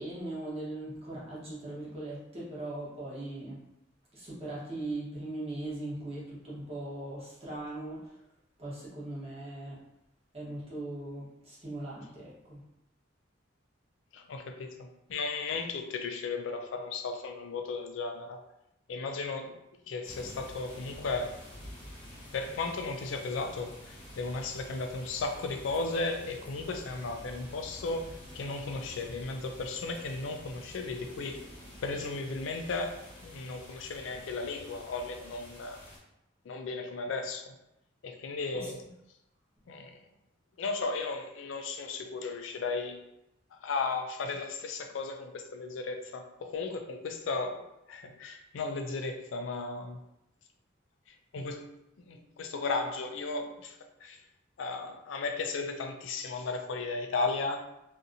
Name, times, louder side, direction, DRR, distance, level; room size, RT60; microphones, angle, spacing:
voice 1, 0.0-3.6 4.1-8.1 8.6-9.8 10.3-12.6 38.5-38.7, right 2 dB, 30° right, -7 dB, 0.9 m, -39 dB
voice 2, 14.1-18.4 18.9-19.6 19.9-21.3 22.3-31.4 31.8-32.9 33.2-35.8 36.5-37.5 38.0-38.8 39.7-40.0 40.6-43.0 43.5-50.0 51.1-54.2 54.6-57.6, left 3 dB, 70° left, 5 dB, 0.4 m, -35 dB
sound 1, 20.0-36.0, left 1 dB, 30° left, 1.0 m, -49 dB
2.7 x 2.5 x 2.5 m, 0.87 s
head